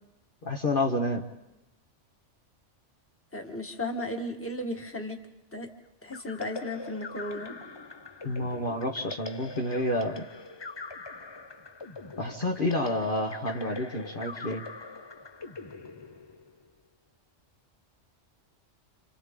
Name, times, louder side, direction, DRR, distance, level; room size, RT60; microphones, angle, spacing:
voice 1, 0.4-1.2 8.2-10.3 12.2-14.6, left 1 dB, 45° left, 2 dB, 1.4 m, -29 dB
voice 2, 3.3-5.2 5.5-5.7 6.0-7.6, left 1 dB, 10° left, 3 dB, 1.6 m, -35 dB
sound 1, 6.1-16.7, left 3 dB, 25° left, 0.6 m, -43 dB
28.5 x 28.0 x 3.7 m, 0.96 s
omnidirectional pair, 1.2 m